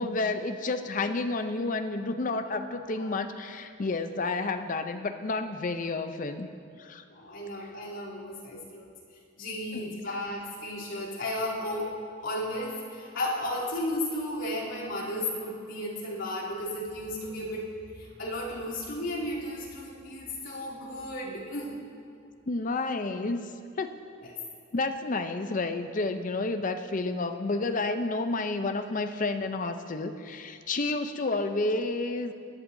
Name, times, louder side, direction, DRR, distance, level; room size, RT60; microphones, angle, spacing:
voice 1, 0.0-6.5 6.8-7.0 9.7-10.0 22.5-23.5 23.8-23.9 24.7-32.3, left 3 dB, 40° left, 8 dB, 0.6 m, -30 dB
voice 2, 7.1-8.9 9.4-11.9 12.2-21.7 24.2-24.4, left 1 dB, 70° left, -8 dB, 3.2 m, -34 dB
18.0 x 11.0 x 2.7 m, 2.3 s
head